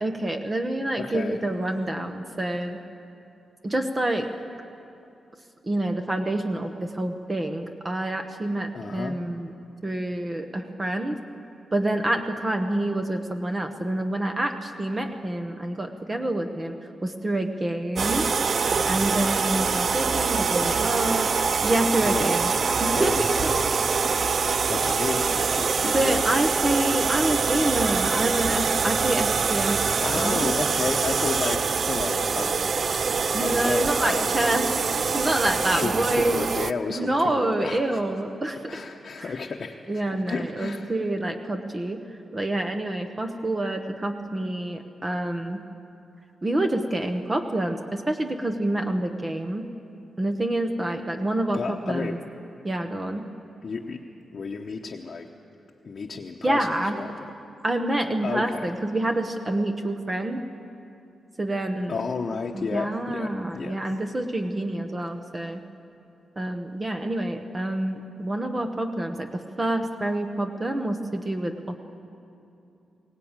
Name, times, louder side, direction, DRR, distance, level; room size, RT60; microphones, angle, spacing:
voice 1, 0.0-2.8 3.6-4.3 5.7-9.5 9.8-11.2 11.7-16.7 17.0-18.3 18.9-21.3 21.6-22.5 22.8-23.8 25.8-29.8 30.1-30.5 33.3-34.7 35.1-36.4 37.0-38.8 39.2-39.3 39.9-42.0 42.3-45.6 46.4-49.7 50.2-52.2 52.6-53.3 56.4-57.0 57.6-60.4 61.4-62.0 62.5-65.6 66.4-71.8, right 1 dB, 20° right, 5 dB, 0.9 m, -27 dB
voice 2, 1.0-1.4 8.7-9.2 20.6-20.8 22.0-23.3 24.7-26.3 30.0-34.4 35.7-38.0 38.7-40.9 51.5-52.2 53.6-54.0 54.3-55.3 55.8-57.3 58.2-58.7 61.9-63.8, left 4 dB, 40° left, 1 dB, 1.0 m, -32 dB
sound 1, 18.0-36.7, right 5 dB, 40° right, 0.4 m, -24 dB
22.5 x 18.0 x 8.9 m, 2.7 s
wide cardioid pair, 175°, 0 cm